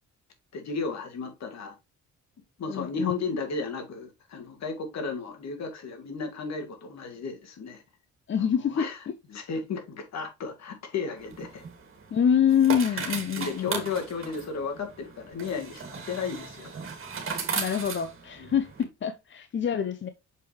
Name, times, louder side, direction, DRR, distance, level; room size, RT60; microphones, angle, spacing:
voice 1, 0.5-1.7 2.6-7.8 8.4-9.0 9.3-11.7 12.9-16.8 18.4-18.5, left 4 dB, 60° left, 2.2 m, -34 dB
voice 2, 2.7-3.2 8.3-9.1 12.1-13.7 17.6-20.1, left 8 dB, 40° left, 0.7 m, -26 dB
sound 1, 11.2-18.8, right 5 dB, 45° right, 2.3 m, -37 dB
6.7 x 5.1 x 3.2 m
cardioid pair, 90°, 30 cm